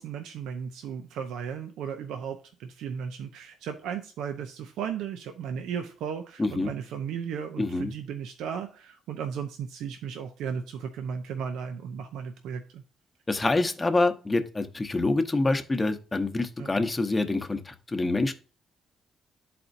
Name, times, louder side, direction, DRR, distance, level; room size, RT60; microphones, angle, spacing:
voice 1, 0.0-12.8 16.6-16.7, right 7 dB, 85° right, 5 dB, 0.6 m, -35 dB
voice 2, 6.4-6.7 7.6-7.9 13.3-18.3, left 2 dB, 20° left, 7 dB, 0.8 m, -26 dB
10.5 x 4.3 x 2.6 m, 0.37 s
cardioid pair, 90°, 0 cm